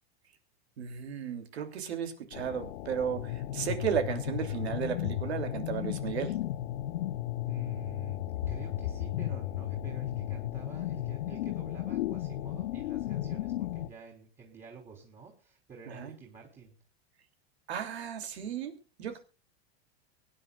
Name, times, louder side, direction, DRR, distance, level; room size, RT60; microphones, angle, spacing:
voice 1, 0.8-6.3 15.9-16.1 17.7-19.2, right 8 dB, 85° right, 7 dB, 3.0 m, -34 dB
sound 1, 2.3-13.9, left 13 dB, 75° left, 1.0 m, -34 dB
voice 2, 7.5-8.2 8.5-16.8 19.1-19.2, right 5 dB, 20° right, 0 dB, 3.8 m, -50 dB
23.5 x 10.0 x 2.4 m, 0.31 s
hypercardioid pair, 115°, 32 cm